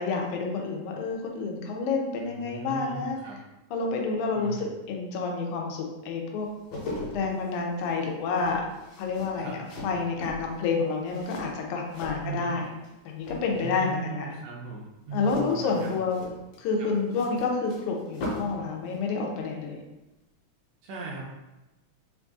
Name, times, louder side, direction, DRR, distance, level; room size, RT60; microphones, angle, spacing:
voice 1, 0.0-3.2 3.7-6.5 7.1-8.6 9.0-12.7 13.1-14.4 15.1-16.2 16.6-19.8, left 4 dB, 80° left, 1 dB, 2.1 m, -29 dB
voice 2, 2.2-3.4 4.3-4.7 9.4-9.6 12.2-12.5 13.5-15.9 16.8-16.9 20.8-21.2, right 3 dB, 75° right, -3 dB, 1.7 m, -38 dB
sound 1, 6.4-12.9 13.2-13.8 15.1-18.6 18.9-19.1, left 1 dB, 65° left, 2.2 m, -40 dB
5.1 x 2.6 x 3.5 m, 1.0 s
omnidirectional pair, 3.4 m